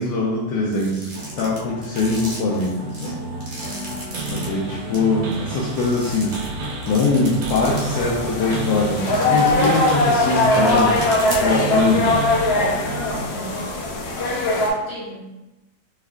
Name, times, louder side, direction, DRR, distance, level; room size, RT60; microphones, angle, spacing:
voice 1, 0.0-3.2 4.2-11.0 11.4-12.2, left 3 dB, 75° left, -5 dB, 1.2 m, -22 dB
sound 1, 0.7-4.4 4.9-5.0 5.3-7.8 8.2-8.3 8.9-11.6, right 1 dB, 45° right, 0.7 m, -36 dB
sound 2, 1.1-13.3, right 2 dB, 65° right, 1.0 m, -31 dB
voice 2, 3.6-4.4 13.1-13.6 14.2-15.2, equal, 80° right, -9 dB, 2.3 m, -37 dB
sound 3, 7.6-14.7, left 2 dB, 90° left, 0.5 m, -21 dB
4.2 x 3.4 x 2.3 m, 1.0 s
omnidirectional pair, 2.0 m